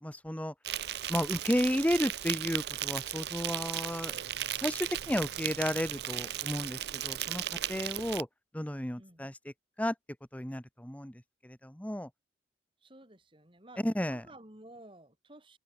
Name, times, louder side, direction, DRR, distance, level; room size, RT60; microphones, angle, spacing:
voice 1, 0.0-0.5 1.1-4.1 4.6-7.4 7.7-8.3 8.5-9.5 9.8-9.9 10.3-12.1 13.8-14.2, equal, 10° left, 1.1 m, -33 dB
Insect, 0.6-8.2, right 12 dB, 60° right, 0.6 m, -36 dB
voice 2, 9.0-9.3 12.8-13.8 14.1-15.6, right 1 dB, 30° right, 4.1 m, -53 dB
head